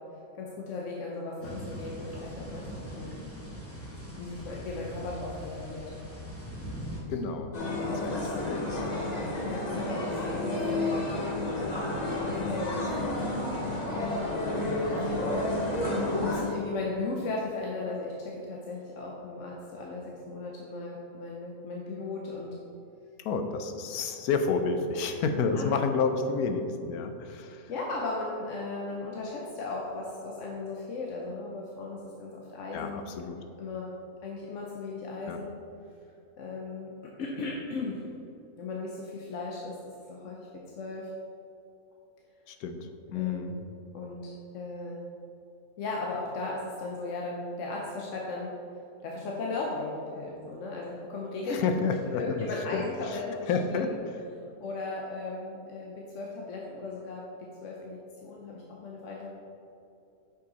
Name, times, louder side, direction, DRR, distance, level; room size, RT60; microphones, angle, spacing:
voice 1, 0.1-3.1 4.2-5.9 6.9-7.1 8.1-8.2 9.4-11.0 12.2-13.2 15.1-15.3 16.2-22.5 25.0-25.2 25.5-25.7 27.7-33.0 33.6-33.9 34.2-35.5 36.4-36.9 37.2-38.0 38.6-39.7 40.1-40.5 40.8-41.1 43.1-43.6 43.9-45.0 45.8-48.5 49.0-51.6 52.1-54.0 54.6-57.2 57.6-59.4, left 3 dB, 60° left, -2 dB, 1.0 m, -37 dB
sound 1, 1.4-7.0, equal, 10° left, 1.0 m, -41 dB
voice 2, 7.1-7.5 7.8-9.1 9.7-10.0 10.8-11.4 12.4-12.8 14.9-15.1 23.2-27.7 32.7-33.4 35.3-35.4 42.5-43.6 51.5-52.5 52.7-52.8 53.1-53.2 53.5-54.0, left 5 dB, 85° left, 7 dB, 1.1 m, -31 dB
sound 2, 7.5-16.4, left 1 dB, 35° left, 0.8 m, -30 dB
6.4 x 5.6 x 3.9 m, 2.7 s
omnidirectional pair, 1.6 m